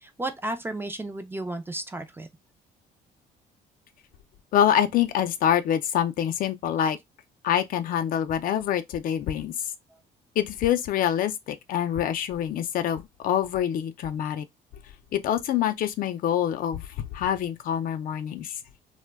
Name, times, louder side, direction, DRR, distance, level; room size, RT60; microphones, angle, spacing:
voice 1, 0.0-2.3, right 2 dB, 15° right, 0.4 m, -33 dB
voice 2, 4.5-7.0 7.4-9.5 10.4-14.5 15.1-18.6, left 10 dB, 55° left, 0.4 m, -25 dB
2.1 x 2.1 x 3.3 m
cardioid pair, 110°, 17 cm